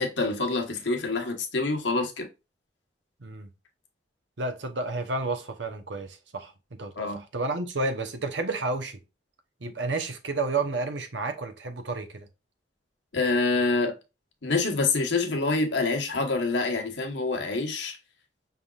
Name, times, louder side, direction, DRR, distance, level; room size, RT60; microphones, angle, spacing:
voice 1, 0.0-2.3 7.0-7.2 13.1-13.9 14.4-18.0, left 3 dB, 85° left, 1.1 m, -26 dB
voice 2, 3.2-3.5 4.4-6.5 6.8-9.0 9.6-12.3, right 3 dB, 85° right, 0.8 m, -31 dB
5.8 x 3.4 x 2.4 m
head